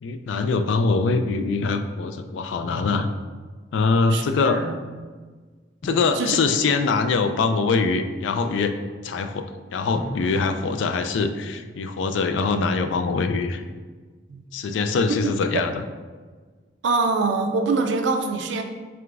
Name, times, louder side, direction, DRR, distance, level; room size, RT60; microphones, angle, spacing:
voice 1, 0.0-3.1 3.7-4.6 5.8-8.7 9.0-13.6 14.5-15.8, left 4 dB, 80° left, 8 dB, 0.3 m, -23 dB
voice 2, 4.1-4.8 6.2-6.4 14.3-14.4 15.5-15.6 16.8-18.6, right 4 dB, 70° right, 5 dB, 0.4 m, -24 dB
Drum, 5.8-7.3 9.9-12.1, left 1 dB, 55° left, 1.1 m, -40 dB
4.8 x 3.4 x 2.5 m, 1.4 s
head